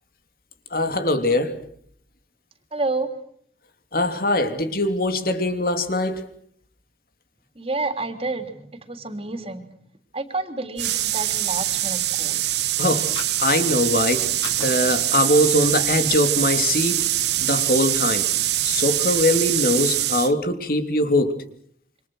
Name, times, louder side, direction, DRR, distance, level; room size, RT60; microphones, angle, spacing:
voice 1, 0.7-1.6 3.9-6.3 12.8-14.3 14.6-17.0 17.4-18.3 18.6-21.4, left 1 dB, 55° left, 3.1 m, -22 dB
voice 2, 2.7-3.1 7.5-9.7 10.1-12.4, right 3 dB, 35° right, 3.4 m, -29 dB
sound 1, 10.8-20.3, right 13 dB, 75° right, 1.4 m, -23 dB
Fire, 13.1-14.0 14.3-15.7 16.1-16.2 16.6-17.6, left 3 dB, 25° left, 5.6 m, -39 dB
28.0 x 26.0 x 6.4 m
head